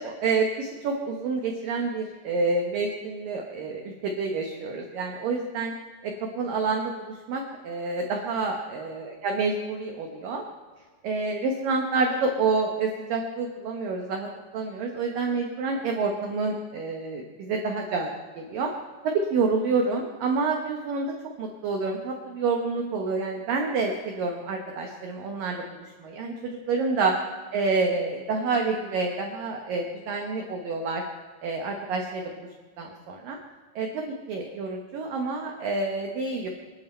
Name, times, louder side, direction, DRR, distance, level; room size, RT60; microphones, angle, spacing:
voice 1, 0.0-5.7 6.0-10.4 11.0-14.3 14.5-18.1 18.4-18.7 19.0-27.1 27.5-31.0 31.4-32.5 32.8-33.4 33.8-36.5, right 4 dB, 90° right, 2 dB, 1.9 m, -28 dB
25.5 x 11.5 x 4.4 m, 1.4 s
omnidirectional pair, 5.8 m